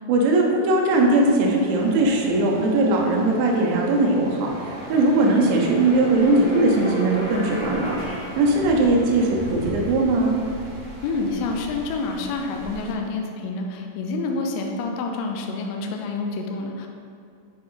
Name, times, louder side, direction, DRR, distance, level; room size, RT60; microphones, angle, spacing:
voice 1, 0.1-4.5 4.9-8.0 8.4-10.4, right 2 dB, 75° right, -1 dB, 3.1 m, -19 dB
sound 1, 0.9-12.9, right 1 dB, 55° right, 2.2 m, -38 dB
sound 2, 4.0-9.2, left 1 dB, 50° left, 2.4 m, -35 dB
voice 2, 11.0-16.9, left 3 dB, 80° left, 2 dB, 2.5 m, -28 dB
9.7 x 4.4 x 3.9 m, 2.3 s
omnidirectional pair, 5.7 m